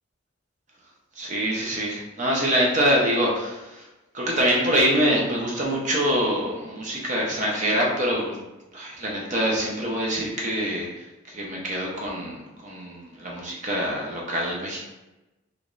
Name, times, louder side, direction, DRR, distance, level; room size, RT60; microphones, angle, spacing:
voice 1, 1.2-3.8 4.1-8.4 8.7-10.9 11.3-14.8, equal, 35° right, -2 dB, 0.7 m, -25 dB
3.4 x 3.0 x 2.5 m, 1.0 s
head